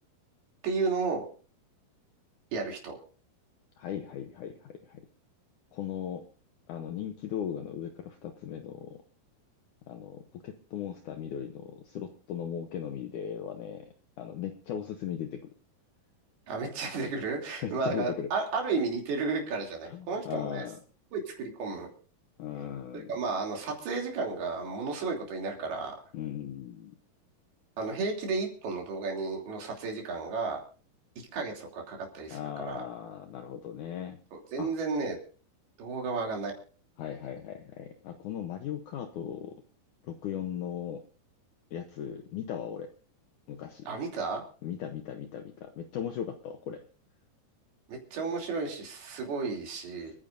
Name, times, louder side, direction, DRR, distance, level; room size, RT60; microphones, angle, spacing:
voice 1, 0.6-1.2 2.5-3.0 16.5-20.6 21.1-21.9 22.9-26.0 27.8-30.6 31.3-32.8 34.3-35.2 35.8-36.5 43.9-44.4 47.9-50.1, right 4 dB, 70° right, 1 dB, 4.9 m, -33 dB
voice 2, 3.8-5.0 5.7-6.2 6.7-9.0 9.9-13.9 14.2-15.5 17.6-18.3 19.9-20.8 22.4-23.1 26.1-26.9 32.3-34.2 34.6-34.7 37.0-39.5 40.0-41.0 41.7-42.9 43.5-43.9 44.6-46.8, left 9 dB, 75° left, 6 dB, 1.8 m, -38 dB
29.0 x 10.0 x 2.6 m, 0.40 s
omnidirectional pair, 4.6 m